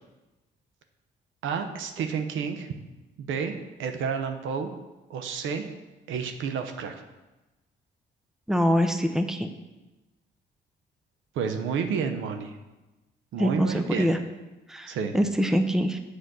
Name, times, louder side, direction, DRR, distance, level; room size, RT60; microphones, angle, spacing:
voice 1, 1.4-2.7 3.2-3.5 3.8-4.7 5.1-5.6 6.1-7.0 11.3-12.6 13.3-14.1 14.9-15.1, right 6 dB, 80° right, 7 dB, 0.8 m, -30 dB
voice 2, 8.5-9.5 13.4-14.2 14.7-16.0, equal, ahead, 7 dB, 0.6 m, -24 dB
7.8 x 4.2 x 6.2 m, 1.1 s
cardioid pair, 90°, 20 cm